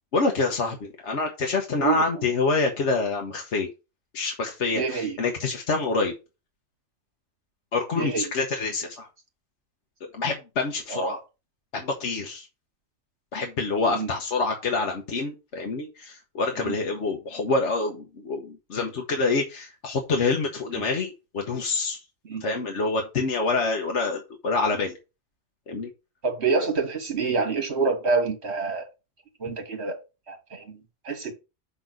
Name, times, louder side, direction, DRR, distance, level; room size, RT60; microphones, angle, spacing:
voice 1, 0.1-3.7 4.1-6.1 7.7-9.1 10.1-11.2 11.7-12.5 13.3-22.0 22.4-25.0 25.7-25.9, left 3 dB, 60° left, 1.3 m, -26 dB
voice 2, 4.7-5.2 8.0-8.3 10.9-11.2 13.9-14.1 16.6-16.7 22.2-22.4 26.2-28.9 29.4-30.0 30.3-31.3, right 4 dB, 55° right, 2.1 m, -27 dB
6.1 x 4.0 x 6.1 m
omnidirectional pair, 1.3 m